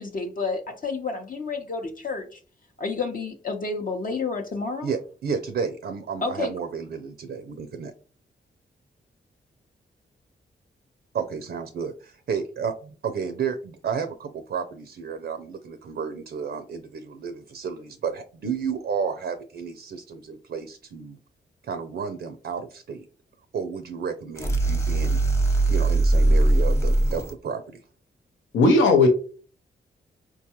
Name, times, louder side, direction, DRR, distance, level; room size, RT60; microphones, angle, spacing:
voice 1, 0.0-2.4 2.8-4.9 6.2-6.5, left 4 dB, 45° left, 2 dB, 0.7 m, -30 dB
voice 2, 4.8-7.9 11.1-21.2 21.6-23.1 23.5-25.2 25.7-27.8, right 6 dB, 65° right, 9 dB, 0.5 m, -32 dB
sound 1, 24.4-27.3, right 2 dB, 15° left, 0.9 m, -20 dB
voice 3, 28.5-29.1, left 3 dB, 85° left, 4 dB, 0.6 m, -16 dB
4.5 x 2.2 x 2.8 m, 0.40 s
supercardioid pair, 50°, 19 cm